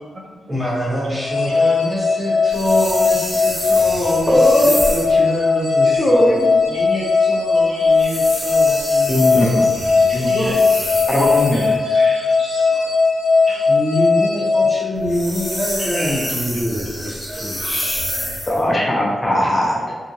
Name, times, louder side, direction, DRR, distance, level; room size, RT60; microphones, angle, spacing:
voice 1, 0.5-9.7 13.7-18.0, equal, 25° right, -10 dB, 1.1 m, -25 dB
sound 1, 1.1-15.5, left 4 dB, 90° left, 0.4 m, -18 dB
sound 2, 2.5-5.2 7.9-11.7 14.9-18.6, equal, 5° left, 1.3 m, -28 dB
voice 2, 4.3-4.8 6.0-6.6 9.1-9.5 10.1-10.3 11.1-11.6 18.5-19.9, left 1 dB, 20° left, -4 dB, 0.5 m, -18 dB
voice 3, 6.7-7.1 7.7-8.1 9.3-9.5 9.9-10.6 11.5-12.9 13.4-13.6 15.8-16.4 17.3-17.8, equal, 50° right, -5 dB, 0.8 m, -32 dB
2.7 x 2.7 x 2.8 m, 1.5 s
wide cardioid pair, 160°, 0 cm